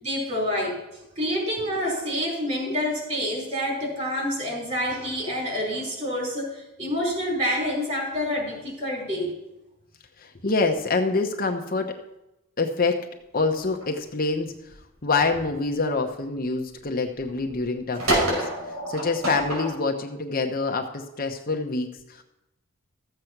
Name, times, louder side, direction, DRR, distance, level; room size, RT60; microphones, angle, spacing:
voice 1, 0.0-0.8 1.2-9.3, equal, 30° right, -2 dB, 4.5 m, -27 dB
voice 2, 10.2-11.9 12.6-13.1 13.3-14.7 15.0-22.2, left 3 dB, 40° left, 3 dB, 0.9 m, -26 dB
sound 1, 13.6-13.9 14.4-15.7 16.1-16.2 16.6-16.7 16.9-17.6 17.9-19.7, right 1 dB, 90° right, 5.6 m, -27 dB
14.0 x 8.0 x 5.9 m, 0.92 s
head